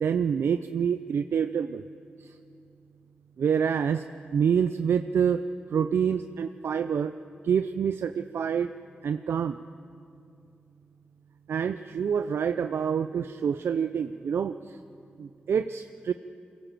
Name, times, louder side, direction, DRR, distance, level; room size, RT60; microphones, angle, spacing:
voice 1, 0.0-1.8 2.2-2.3 3.4-4.0 4.3-5.4 5.7-7.1 7.4-8.7 9.0-9.6 11.5-14.8 15.2-16.1, right 7 dB, 80° right, 10 dB, 0.5 m, -27 dB
23.5 x 17.5 x 7.7 m, 2.4 s
cardioid pair, 55°, 4 cm